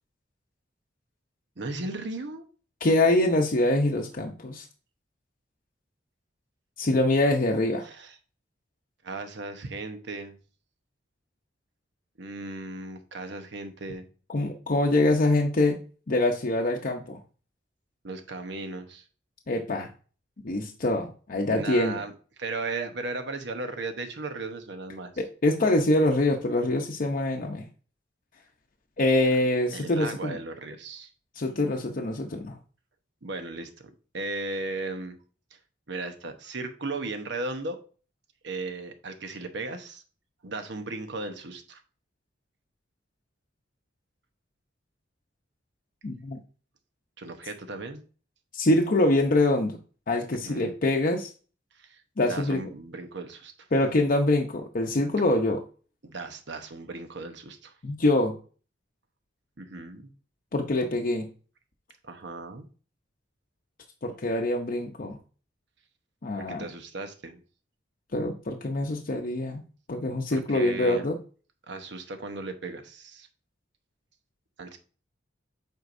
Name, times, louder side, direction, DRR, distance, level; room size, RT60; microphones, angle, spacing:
voice 1, 1.6-2.4 7.8-8.2 9.0-10.4 12.2-14.1 18.0-19.0 21.5-22.1 22.4-25.1 29.7-31.1 33.2-35.2 35.5-35.6 35.9-37.8 38.4-40.0 40.4-41.8 47.2-48.0 50.3-50.7 51.7-52.0 52.3-53.7 56.0-57.7 59.6-60.1 62.0-62.7 66.4-67.4 70.3-71.1 71.7-73.3 74.6-74.8, right 3 dB, 65° right, 6 dB, 0.9 m, -36 dB
voice 2, 2.8-4.6 6.8-7.9 14.3-15.8 16.1-17.2 19.5-19.9 20.4-22.0 25.2-27.6 29.0-30.4 31.4-32.6 46.0-46.4 48.5-49.8 50.1-51.3 52.2-52.6 53.7-55.6 57.8-58.4 60.5-61.3 64.0-65.2 66.2-66.6 68.1-69.6 69.9-71.2, left 2 dB, 50° left, 1 dB, 0.7 m, -24 dB
8.0 x 4.6 x 2.6 m, 0.38 s
head